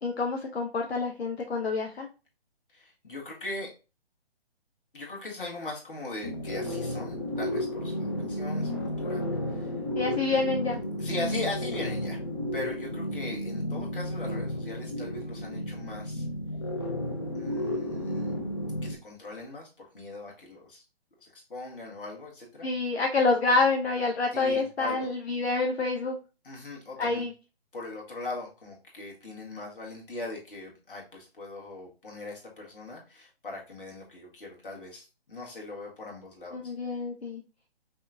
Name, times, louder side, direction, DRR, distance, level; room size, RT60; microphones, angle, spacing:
voice 1, 0.0-2.1 10.0-10.8 22.6-26.2 27.0-27.3 36.5-37.4, left 3 dB, 75° left, 2 dB, 0.8 m, -27 dB
voice 2, 2.7-3.7 4.9-9.8 10.1-10.4 11.0-12.2 12.5-16.2 17.3-18.3 18.8-20.8 21.2-22.7 24.3-25.1 26.4-27.2 27.7-36.7, left 2 dB, 55° left, -2 dB, 1.7 m, -40 dB
sound 1, 6.2-19.0, left 1 dB, 25° left, 0.4 m, -32 dB
5.3 x 2.2 x 2.5 m, 0.31 s
figure-of-eight pair, 145°, 32 cm